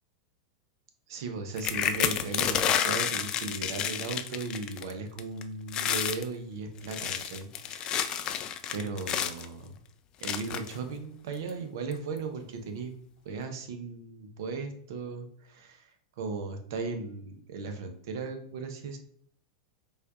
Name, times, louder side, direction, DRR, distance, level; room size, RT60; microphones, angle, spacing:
voice 1, 1.1-8.4 8.7-9.8 10.2-12.9 13.2-15.9 16.2-19.0, right 4 dB, 65° right, 6 dB, 0.6 m, -37 dB
sound 1, 1.6-4.9 5.2-5.4 5.7-6.2 6.8-9.5 10.2-10.8 11.5-11.6 11.9-12.2, left 9 dB, 35° left, 0.3 m, -30 dB
4.3 x 2.4 x 2.3 m, 0.63 s
hypercardioid pair, 100°, 2 cm